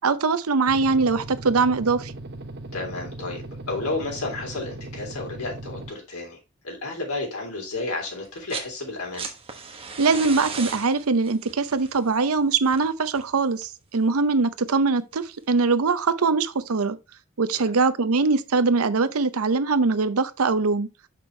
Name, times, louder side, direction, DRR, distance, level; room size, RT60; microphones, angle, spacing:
voice 1, 0.0-2.1 10.0-17.0 17.4-20.9, right 4 dB, 85° right, 0.7 m, -22 dB
sound 1, 0.7-5.9, right 2 dB, 50° right, 0.9 m, -38 dB
voice 2, 2.7-6.4 6.6-9.3 17.5-17.7, left 2 dB, 90° left, 3.3 m, -32 dB
sound 2, 8.2-8.7 9.0-13.9 15.1-15.2, right 5 dB, 25° right, 1.2 m, -37 dB
7.0 x 5.9 x 3.3 m
head